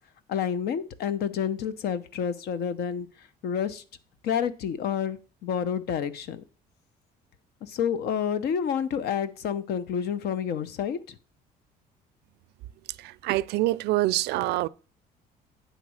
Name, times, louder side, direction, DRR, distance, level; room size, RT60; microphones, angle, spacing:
voice 1, 0.3-3.1 3.4-3.8 4.2-6.4 7.6-11.0, left 8 dB, 70° left, 0.8 m, -29 dB
voice 2, 13.0-14.7, right 17 dB, 80° right, 0.4 m, -25 dB
9.1 x 4.1 x 6.2 m
cardioid pair, 110°, 17 cm